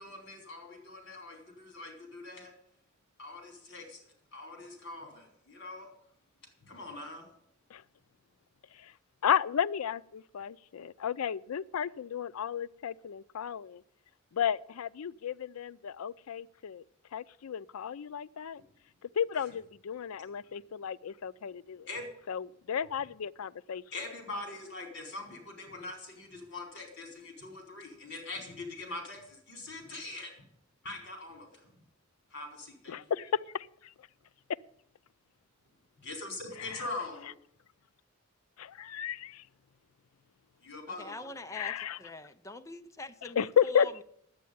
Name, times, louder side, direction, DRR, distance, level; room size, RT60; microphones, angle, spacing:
voice 1, 0.0-2.5 3.2-5.9 6.7-7.3 19.3-19.4 21.9-22.1 23.9-30.3 30.8-31.8 32.3-33.0 36.0-37.3 40.6-41.3, left 2 dB, 55° left, 4.4 m, -43 dB
voice 2, 9.2-13.8 14.3-16.8 17.1-18.6 19.2-21.9 22.3-23.8 32.9-33.3 33.5-33.7 36.6-36.8 38.6-39.4 41.5-42.0 43.4-43.9, left 8 dB, 90° left, 0.4 m, -33 dB
voice 3, 41.0-43.9, left 2 dB, 15° left, 0.5 m, -44 dB
10.5 x 8.5 x 9.5 m
head